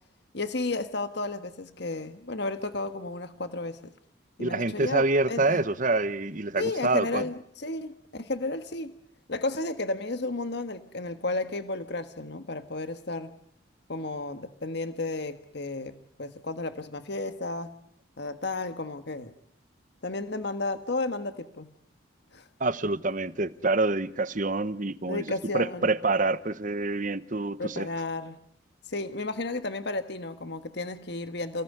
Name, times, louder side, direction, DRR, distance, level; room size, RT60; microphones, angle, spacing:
voice 1, 0.3-3.9 4.4-5.6 6.6-8.9 9.3-13.3 13.9-17.7 18.2-19.3 20.0-21.7 22.3-22.4 25.0-25.9 27.6-28.4 28.9-31.6, left 2 dB, 60° left, 1.5 m, -33 dB
voice 2, 4.4-7.3 22.6-25.2 25.5-27.9, right 2 dB, 40° right, 1.1 m, -26 dB
29.5 x 18.0 x 9.5 m
head